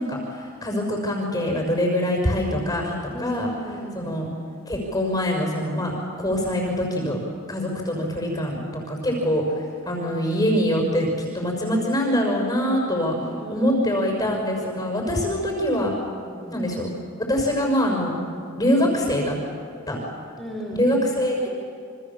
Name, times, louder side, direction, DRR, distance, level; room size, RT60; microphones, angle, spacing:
voice 1, 0.0-3.5 4.0-4.3 4.7-7.2 7.5-8.6 8.9-13.2 13.5-15.9 16.5-16.9 17.2-18.1 18.6-19.3 19.9-20.0 20.7-21.5, equal, 15° left, 1 dB, 6.0 m, -24 dB
voice 2, 3.1-4.1 13.1-14.1 16.2-16.7 20.4-20.9, right 1 dB, ahead, -1 dB, 5.5 m, -35 dB
28.5 x 26.5 x 7.3 m, 2.4 s
head